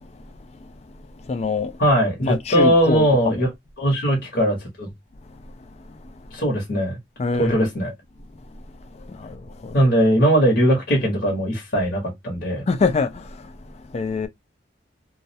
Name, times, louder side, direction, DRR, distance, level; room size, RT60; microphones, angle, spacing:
voice 1, 1.2-1.7 2.2-3.4 7.2-7.7 8.9-9.8 12.7-13.5 13.9-14.3, left 4 dB, 35° left, 0.3 m, -25 dB
voice 2, 1.8-3.5 3.8-4.9 6.3-7.0 7.4-7.9 9.7-12.6, equal, 55° left, 0.9 m, -20 dB
2.3 x 2.0 x 2.6 m
head